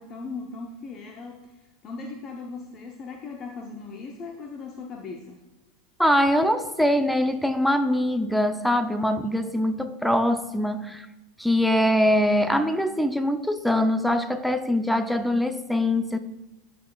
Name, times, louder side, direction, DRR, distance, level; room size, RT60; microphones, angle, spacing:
voice 1, 0.0-1.5 1.8-5.4, left 4 dB, 40° left, 1 dB, 0.8 m, -38 dB
voice 2, 6.0-11.1 11.4-16.2, left 1 dB, ahead, 9 dB, 0.5 m, -23 dB
13.0 x 4.3 x 2.4 m, 1.1 s
hypercardioid pair, 90°, 0 cm